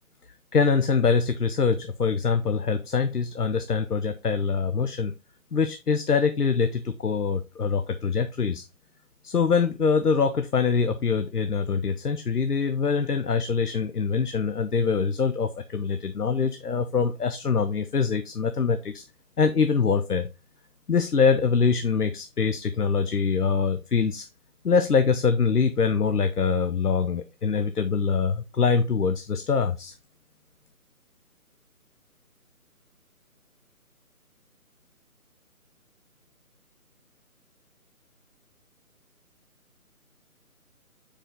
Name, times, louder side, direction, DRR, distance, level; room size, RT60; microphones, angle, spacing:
voice 1, 0.5-5.1 5.5-8.6 9.2-19.0 19.4-20.3 20.9-24.3 24.6-29.9, left 5 dB, 85° left, 8 dB, 0.8 m, -24 dB
6.6 x 5.0 x 3.7 m, 0.27 s
figure-of-eight pair, 150°, 45 cm